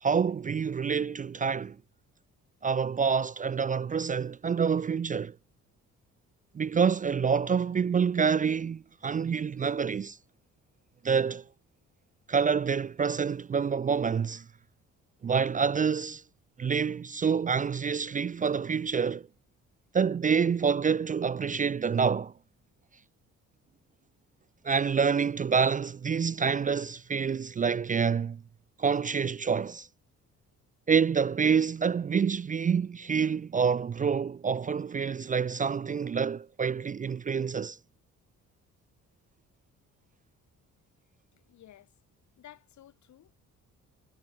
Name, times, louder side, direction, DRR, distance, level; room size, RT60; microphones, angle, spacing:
voice 1, 0.0-1.8 2.6-5.4 6.5-10.2 11.0-11.4 12.3-14.5 15.2-16.2 16.6-19.3 19.9-22.3 24.6-28.4 28.8-29.9 30.9-37.8, right 6 dB, 25° right, 0.4 m, -27 dB
voice 2, 41.3-41.9 42.4-43.5, left 12 dB, 70° left, 2.3 m, -54 dB
cardioid pair, 90°, 30 cm